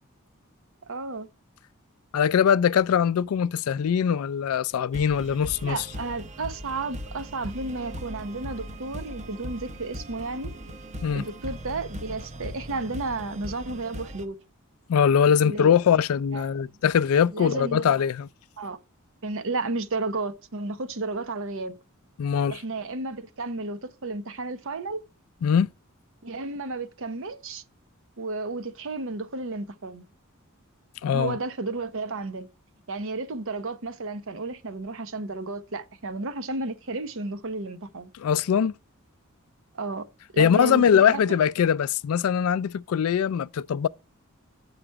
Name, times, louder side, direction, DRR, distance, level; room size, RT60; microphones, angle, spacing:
voice 1, 0.9-1.3 5.6-10.5 11.1-14.4 15.4-15.8 16.3-16.5 17.3-18.0 18.6-18.8 19.2-21.7 22.5-25.0 26.2-27.6 28.2-30.0 31.1-32.5 32.9-38.1 39.7-40.1 40.3-41.4, right 3 dB, 65° right, 0.8 m, -32 dB
voice 2, 2.1-5.9 11.0-11.2 14.9-18.3 22.2-22.6 25.4-25.7 31.0-31.4 38.1-38.7 40.4-43.9, left 8 dB, 75° left, 0.3 m, -22 dB
sound 1, 4.9-14.2, equal, 35° right, 0.8 m, -39 dB
8.6 x 5.0 x 4.5 m
head